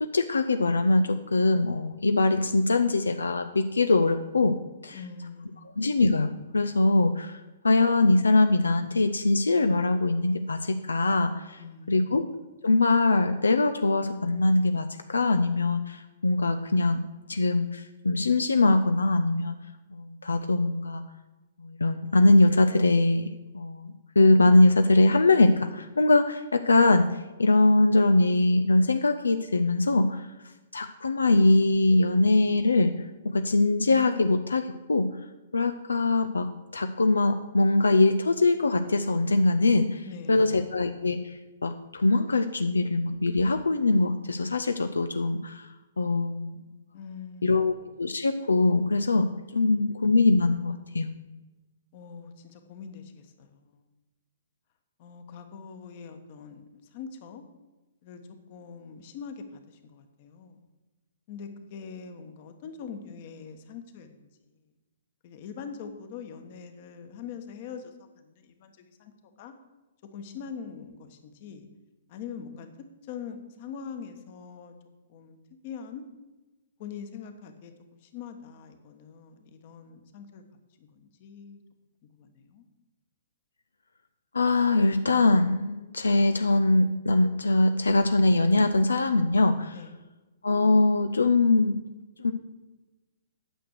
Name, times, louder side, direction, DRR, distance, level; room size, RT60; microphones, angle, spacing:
voice 1, 0.0-4.6 4.8-5.0 5.8-11.6 11.9-12.2 12.6-17.0 17.3-19.5 19.9-21.0 21.6-27.1 27.4-30.3 30.7-32.9 33.2-35.1 35.5-45.7 46.0-46.5 47.4-49.3 49.5-51.1 84.3-89.8 90.4-91.8 92.2-92.3, left 2 dB, 90° left, 8 dB, 0.5 m, -22 dB
voice 2, 4.9-5.8 11.6-12.3 40.0-40.7 46.9-47.8 49.5-50.0 51.9-53.9 55.0-57.4 58.0-58.2 58.5-60.6 61.3-64.7 65.2-69.1 69.4-69.5 70.1-71.7 72.1-74.7 75.1-75.4 75.6-76.0 76.8-77.7 78.0-80.4 80.8-81.6 82.0-82.6 89.7-89.9, left 6 dB, 45° left, 7 dB, 1.3 m, -43 dB
9.1 x 6.2 x 6.6 m, 1.1 s
hypercardioid pair, 130°, 0 cm